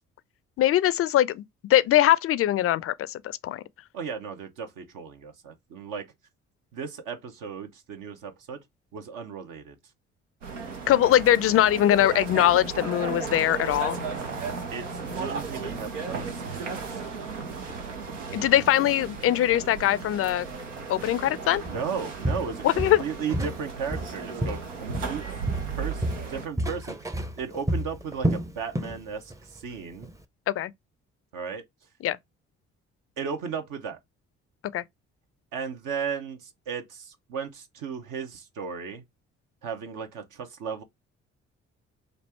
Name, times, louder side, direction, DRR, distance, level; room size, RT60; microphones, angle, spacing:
voice 1, 0.6-1.4 1.7-3.6 10.9-14.0 18.3-20.5 20.9-21.6 22.6-23.0 30.5-30.7 32.0-32.2 34.7-34.8, left 12 dB, 40° left, 0.4 m, -22 dB
voice 2, 3.9-6.1 6.7-8.6 8.9-9.8 14.7-17.0 21.7-25.2 25.8-30.1 31.3-31.6 33.2-34.0 35.5-39.0 39.6-40.8, right 6 dB, 60° right, 0.9 m, -35 dB
sound 1, 10.4-26.5, right 5 dB, 90° right, 0.6 m, -35 dB
Walk footsteps, 21.7-21.9 22.2-23.6 23.9-25.2 25.5-29.0 29.3-29.6 30.0-30.1, right 1 dB, 10° right, 0.6 m, -30 dB
3.2 x 2.5 x 4.3 m
figure-of-eight pair, 45°, 36 cm